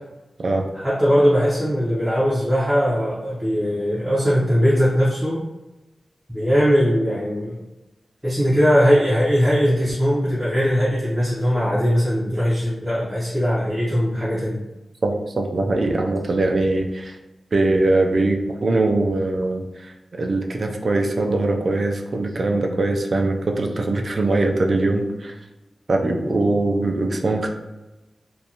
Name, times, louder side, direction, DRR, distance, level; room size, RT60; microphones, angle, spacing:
voice 1, 0.7-5.4 6.3-7.6 8.2-14.6, equal, 10° right, -9 dB, 0.6 m, -20 dB
voice 2, 15.0-17.2 17.5-25.4 25.9-27.5, right 2 dB, 50° right, 3 dB, 0.3 m, -22 dB
2.5 x 2.2 x 2.8 m, 1.1 s
wide cardioid pair, 110°, 0 cm